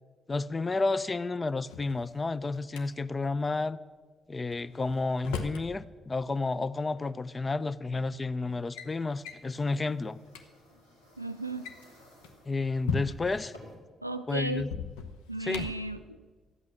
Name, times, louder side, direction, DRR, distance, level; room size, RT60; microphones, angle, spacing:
voice 1, 0.3-3.8 4.3-10.2 12.5-13.5 14.3-14.7 15.4-15.7, left 3 dB, 25° left, 17 dB, 0.5 m, -31 dB
Drawer open or close, 1.5-2.8 4.5-5.7 7.0-7.1 7.9-8.1 8.5-8.9 9.2-9.5 10.0-10.1 10.3-10.4 11.4-13.4 14.6-15.9, left 5 dB, 70° left, 0.8 m, -38 dB
sound 1, 8.4-13.7, equal, 85° left, 2.1 m, -57 dB
voice 2, 11.2-11.7 14.0-14.7 15.3-16.2, right 2 dB, 90° right, 10 dB, 0.3 m, -35 dB
12.5 x 8.3 x 7.1 m, 1.4 s
figure-of-eight pair, 40°, 0 cm